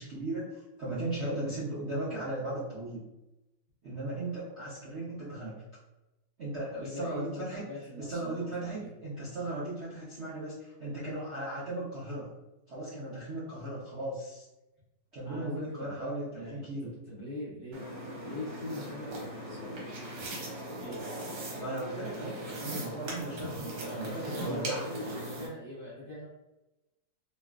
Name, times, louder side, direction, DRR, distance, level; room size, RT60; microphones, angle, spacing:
voice 1, 0.0-3.0 3.8-5.5 6.4-7.7 8.0-12.3 12.7-14.4 15.1-16.9 21.5-24.8, right 2 dB, 55° right, -9 dB, 0.7 m, -37 dB
voice 2, 6.8-8.9 15.2-17.8 18.2-19.9 20.8-21.0 23.8-26.3, left 2 dB, 40° left, -8 dB, 0.8 m, -42 dB
sound 1, 17.7-25.5, right 1 dB, 85° right, 1.5 m, -39 dB
3.1 x 2.3 x 2.3 m, 0.97 s
omnidirectional pair, 2.0 m